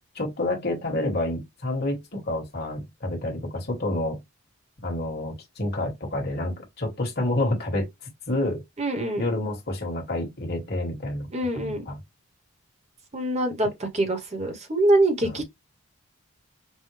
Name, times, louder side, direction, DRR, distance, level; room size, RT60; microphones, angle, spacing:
voice 1, 0.2-4.2 4.8-7.9 8.3-8.6 9.2-11.3 11.6-12.0 15.2-15.4, left 1 dB, 50° left, 1.6 m, -28 dB
voice 2, 8.8-9.2 11.3-11.8 13.1-15.4, right 1 dB, 30° right, 1.0 m, -24 dB
5.5 x 2.2 x 3.2 m
head